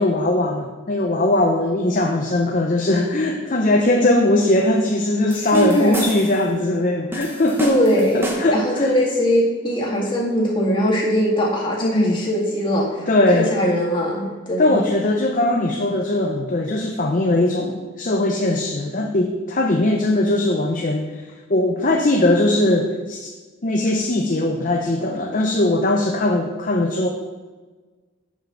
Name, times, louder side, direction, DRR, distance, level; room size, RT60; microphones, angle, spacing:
voice 1, 0.0-7.7 8.1-8.9 11.8-12.2 13.1-13.5 14.6-21.2 21.5-23.3 23.6-27.1, left 1 dB, 40° left, 1 dB, 0.6 m, -20 dB
sound 1, 5.3-6.5 7.1-8.7, right 1 dB, 10° right, 0.9 m, -30 dB
voice 2, 5.5-6.0 7.6-13.1 13.3-14.9, equal, 25° left, -4 dB, 1.9 m, -21 dB
7.5 x 5.5 x 6.2 m, 1.3 s
head